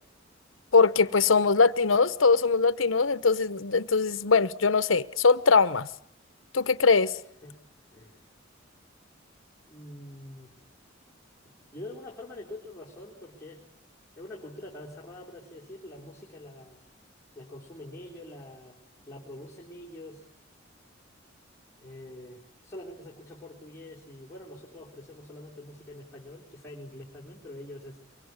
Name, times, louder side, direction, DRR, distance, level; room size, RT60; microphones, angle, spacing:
voice 1, 0.7-5.9 6.5-7.2, left 4 dB, 90° left, 1.0 m, -22 dB
voice 2, 9.6-10.5 11.4-13.6 14.2-16.8 17.4-18.8 19.1-20.2 21.8-28.0, left 1 dB, 15° left, 3.8 m, -45 dB
24.0 x 23.5 x 9.6 m
head